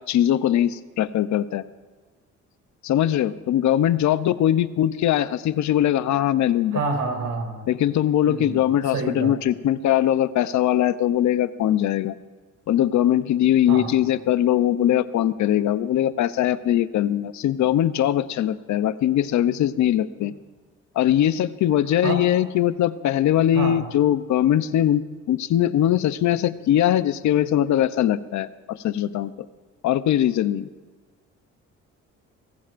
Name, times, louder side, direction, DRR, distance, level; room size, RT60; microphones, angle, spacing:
voice 1, 0.1-1.6 2.8-6.8 7.7-12.1 12.7-20.3 21.0-29.3 29.8-30.7, left 11 dB, 70° left, 14 dB, 0.6 m, -21 dB
voice 2, 6.7-7.6 8.3-8.6 8.9-9.4 13.7-13.9 22.0-22.2 23.5-23.8, right 4 dB, 80° right, 1 dB, 3.4 m, -27 dB
23.0 x 15.0 x 2.5 m, 1.3 s
cardioid pair, 90°, 30 cm